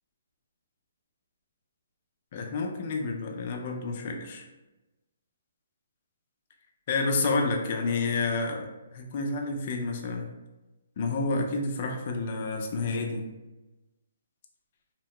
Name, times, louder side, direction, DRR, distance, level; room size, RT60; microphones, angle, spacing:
voice 1, 2.3-4.4 6.9-10.3 11.0-13.2, left 3 dB, 40° left, 2 dB, 0.4 m, -29 dB
2.7 x 2.0 x 3.0 m, 1.1 s
hypercardioid pair, 170°, 0 cm